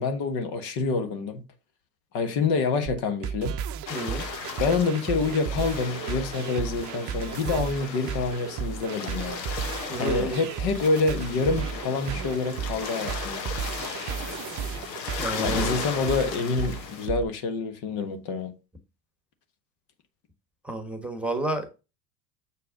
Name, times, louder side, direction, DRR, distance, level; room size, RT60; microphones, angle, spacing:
voice 1, 0.0-1.4 2.1-3.5 4.6-9.5 10.0-13.5 15.4-18.5, left 4 dB, 55° left, 1.4 m, -27 dB
sound 1, 2.9-17.2, right 8 dB, 35° right, 0.7 m, -34 dB
sound 2, 3.9-17.1, left 5 dB, 85° left, 1.3 m, -37 dB
voice 2, 3.9-4.3 9.9-10.4 15.2-15.7 20.6-21.8, right 1 dB, ahead, 1.2 m, -30 dB
7.0 x 4.6 x 3.7 m
hypercardioid pair, 85°, 49 cm